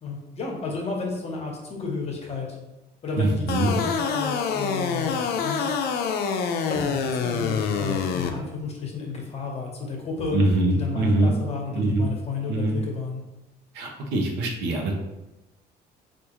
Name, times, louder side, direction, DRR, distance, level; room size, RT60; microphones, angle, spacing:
voice 1, 0.0-2.6 3.0-5.8 6.7-10.4 10.7-13.2, left 4 dB, 40° left, 0 dB, 0.9 m, -32 dB
voice 2, 3.2-3.7 10.3-11.3 11.7-12.1 12.5-12.8 13.7-14.9, right 2 dB, 85° right, 1 dB, 0.7 m, -23 dB
sound 1, 3.5-8.3, left 6 dB, 70° left, 0.4 m, -26 dB
3.5 x 2.4 x 3.0 m, 1.0 s
cardioid pair, 110°, 17 cm